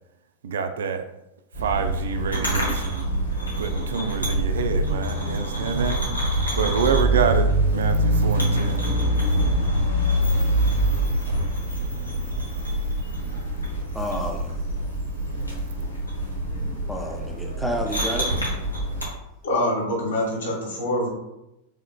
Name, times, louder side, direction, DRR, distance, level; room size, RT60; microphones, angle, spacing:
voice 1, 0.4-1.1 1.6-3.1 3.6-6.0 6.5-8.8, right 5 dB, 65° right, 8 dB, 0.3 m, -27 dB
sound 1, 1.5-19.0, right 1 dB, 85° left, 1.0 m, -25 dB
voice 2, 13.9-14.5 16.9-18.4, equal, ahead, 0 dB, 0.5 m, -30 dB
voice 3, 19.4-21.1, left 1 dB, 65° left, -3 dB, 1.3 m, -25 dB
4.9 x 3.0 x 2.3 m, 0.89 s
figure-of-eight pair, 90°, 0 cm